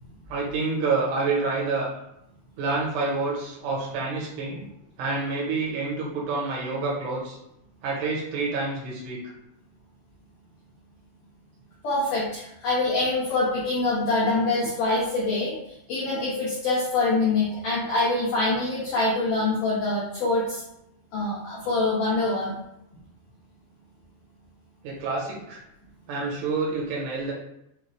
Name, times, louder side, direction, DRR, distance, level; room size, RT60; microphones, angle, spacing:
voice 1, 0.3-1.9 2.6-4.6 5.0-7.4 7.8-9.2 24.8-25.6 26.1-27.3, right 3 dB, 80° right, -4 dB, 3.1 m, -28 dB
voice 2, 11.8-15.6 15.9-20.6 21.1-22.5, left 2 dB, 80° left, -6 dB, 1.9 m, -25 dB
6.2 x 2.3 x 3.2 m, 0.82 s
omnidirectional pair, 4.8 m